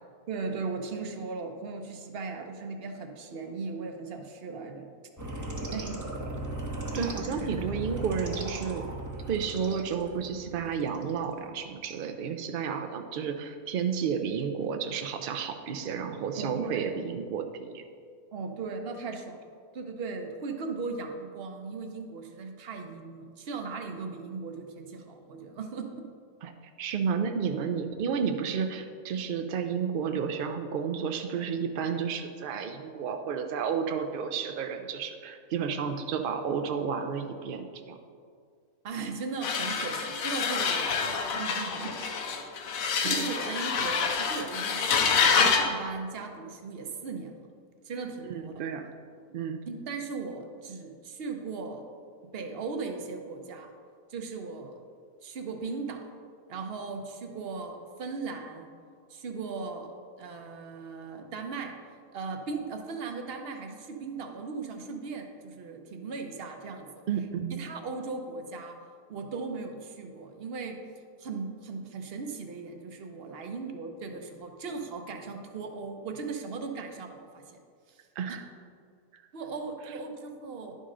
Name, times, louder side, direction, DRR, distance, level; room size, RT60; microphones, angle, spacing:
voice 1, 0.3-4.9 5.3-6.0 16.4-17.0 18.3-19.4 19.7-26.1 38.8-47.4 47.8-48.5 49.7-51.9 52.3-53.7 54.1-54.8 55.2-56.1 56.5-58.7 59.1-61.7 62.1-66.9 67.5-68.8 69.1-70.8 71.2-77.6 77.9-78.0 79.3-80.7, right 4 dB, 50° right, 5 dB, 0.8 m, -38 dB
sound 1, 5.2-11.2, right 1 dB, 20° right, 0.6 m, -37 dB
voice 2, 6.9-8.9 9.3-17.8 26.4-26.5 26.8-38.0 43.0-43.3 48.2-48.9 49.3-49.6 67.1-67.6 78.2-78.4 79.1-79.2, right 6 dB, 75° right, 6 dB, 0.4 m, -31 dB
sound 2, 39.4-45.7, left 5 dB, 75° left, 1.1 m, -27 dB
11.0 x 5.3 x 3.7 m, 2.2 s
omnidirectional pair, 1.5 m